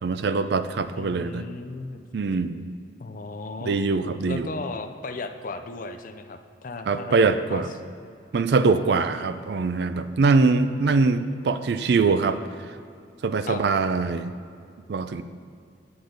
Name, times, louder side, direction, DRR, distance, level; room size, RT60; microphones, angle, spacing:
voice 1, 0.0-1.4 2.1-2.7 3.7-4.5 6.9-7.7 8.3-12.4 13.2-14.3 14.9-15.2, right 4 dB, 60° right, 11 dB, 0.4 m, -23 dB
voice 2, 1.0-2.0 3.0-3.8 4.3-7.6 8.9-9.4 13.5-13.6, left 3 dB, 45° left, 8 dB, 0.5 m, -36 dB
8.6 x 7.8 x 3.9 m, 2.3 s
head